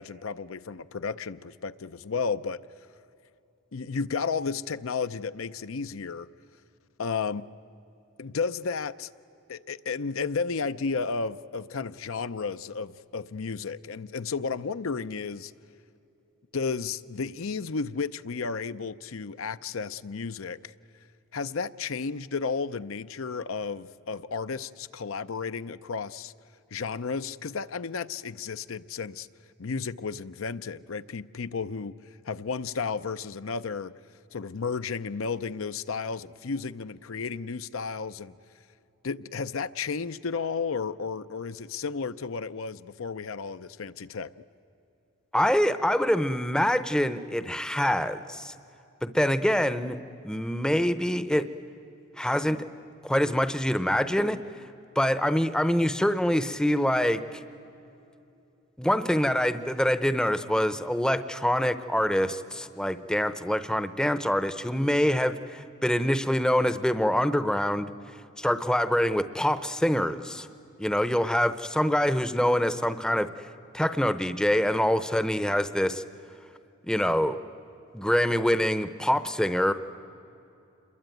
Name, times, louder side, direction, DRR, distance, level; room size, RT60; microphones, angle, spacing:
voice 1, 0.0-2.6 3.7-6.3 7.0-7.5 8.2-9.1 9.5-15.5 16.5-20.7 21.3-26.3 26.7-29.3 29.6-31.9 32.3-33.9 34.3-38.3 39.0-44.3, left 5 dB, 70° left, 12 dB, 0.6 m, -33 dB
voice 2, 45.3-48.5 49.0-50.0 50.2-51.5 52.2-52.6 53.0-54.4 55.0-57.4 58.8-67.9 68.4-70.5 70.8-73.3 73.7-76.0 76.8-77.4 77.9-79.7, equal, 5° left, 12 dB, 0.7 m, -25 dB
27.5 x 22.0 x 9.3 m, 2.8 s
head